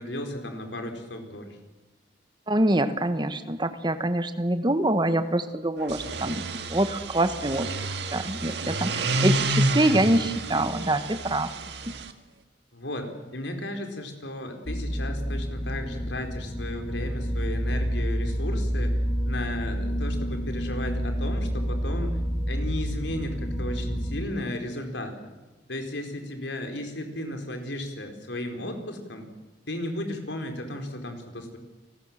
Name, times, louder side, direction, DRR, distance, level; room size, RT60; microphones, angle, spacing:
voice 1, 0.0-1.6 12.7-19.0 19.2-22.2 22.5-25.2 25.7-29.3 29.7-31.6, left 1 dB, 85° left, 5 dB, 4.5 m, -34 dB
voice 2, 2.5-7.7 8.1-11.5 11.9-12.0, right 1 dB, 25° right, 10 dB, 1.4 m, -25 dB
sound 1, 5.8-12.1, right 2 dB, 70° right, 1.8 m, -29 dB
sound 2, 14.7-24.3, equal, 15° left, 2.4 m, -29 dB
29.5 x 20.0 x 7.6 m, 1.2 s
head